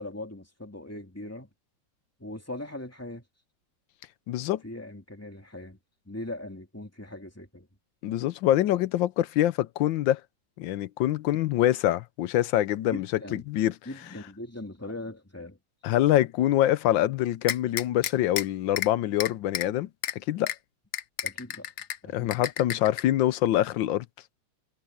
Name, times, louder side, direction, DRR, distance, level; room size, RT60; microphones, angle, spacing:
voice 1, 0.0-1.5 2.2-3.2 4.6-5.8 6.1-7.7 12.9-13.5 13.8-15.6 21.2-21.7 22.0-22.4, left 1 dB, 10° left, 2.9 m, -40 dB
voice 2, 4.3-4.6 8.0-10.2 10.6-13.1 13.3-13.7 15.8-19.9 20.3-20.5 22.1-24.1, left 13 dB, 90° left, 1.4 m, -25 dB
sound 1, 17.5-18.4 18.8-18.9 19.2-19.7 20.0-20.1 20.5-20.6 20.9-22.0 22.3-23.0, left 10 dB, 65° left, 0.7 m, -30 dB
omnidirectional pair, 2.0 m